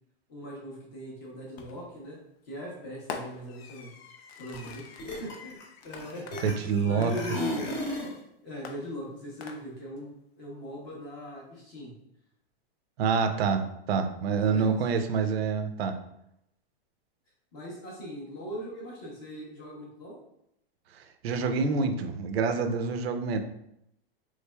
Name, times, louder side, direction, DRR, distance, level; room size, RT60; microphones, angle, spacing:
voice 1, 0.3-2.2 2.4-3.9 4.4-5.6 5.8-7.7 8.4-11.9 14.3-14.8 17.5-20.2, equal, 20° left, -3 dB, 0.5 m, -40 dB
Fireworks, 1.6-2.0 3.1-8.1 8.6-10.0, left 5 dB, 80° left, 0.6 m, -45 dB
sound 1, 4.5-4.7 5.0-6.8 7.1-8.2, left 1 dB, 45° left, 0.8 m, -34 dB
voice 2, 6.4-7.1 13.0-16.0 21.2-23.4, right 5 dB, 80° right, 7 dB, 0.5 m, -27 dB
3.7 x 3.1 x 2.2 m, 0.78 s
supercardioid pair, 180°, 30 cm